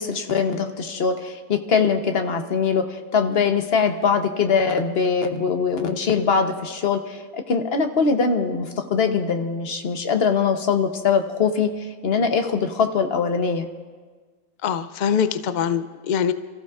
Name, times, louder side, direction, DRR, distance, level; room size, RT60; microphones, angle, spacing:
voice 1, 0.0-11.7 12.0-13.7, left 5 dB, 50° left, 6 dB, 1.1 m, -22 dB
voice 2, 14.6-16.3, left 7 dB, 85° left, 11 dB, 0.4 m, -23 dB
29.5 x 14.5 x 2.4 m, 1.5 s
omnidirectional pair, 1.5 m